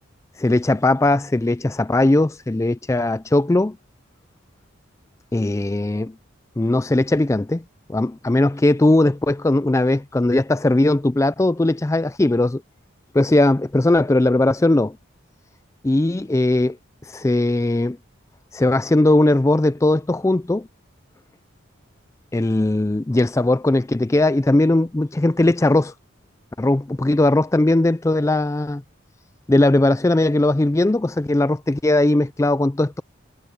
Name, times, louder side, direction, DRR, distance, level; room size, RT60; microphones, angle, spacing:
voice 1, 0.4-3.8 5.3-6.1 6.6-7.6 7.9-12.6 13.1-15.0 15.8-16.8 17.1-18.0 18.5-20.7 22.3-25.9 26.6-28.8 29.5-33.0, left 2 dB, 15° left, 0.3 m, -19 dB
head